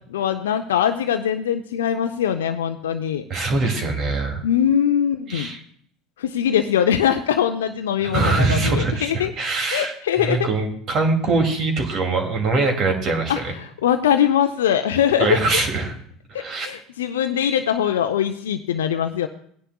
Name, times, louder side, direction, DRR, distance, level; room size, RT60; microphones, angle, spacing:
voice 1, 0.1-3.2 4.4-5.5 6.2-9.3 9.7-10.5 13.3-15.4 16.3-19.3, left 9 dB, 75° left, 6 dB, 0.5 m, -22 dB
voice 2, 3.3-4.4 5.3-5.6 8.0-13.5 15.2-15.9 16.3-16.7, right 3 dB, 45° right, 4 dB, 2.5 m, -23 dB
17.5 x 10.0 x 2.3 m, 0.62 s
hypercardioid pair, 70°, 0 cm